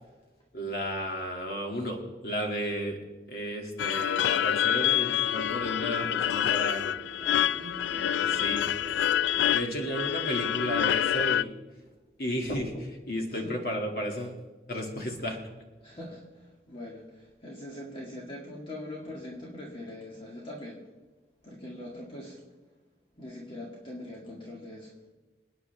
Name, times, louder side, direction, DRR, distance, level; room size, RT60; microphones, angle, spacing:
voice 1, 0.5-3.0 3.3-7.0 8.3-8.6 9.5-11.5 12.2-14.4 14.7-15.4, equal, 60° left, 1 dB, 2.5 m, -33 dB
sound 1, 3.8-11.4, left 10 dB, 80° left, 0.3 m, -27 dB
sound 2, 5.2-10.4, right 1 dB, 25° right, 3.7 m, -46 dB
voice 2, 7.2-9.0 13.4-13.6 15.8-20.8 21.4-22.4 23.2-24.9, left 1 dB, 30° left, -3 dB, 2.0 m, -42 dB
27.5 x 9.6 x 3.5 m, 1.2 s
head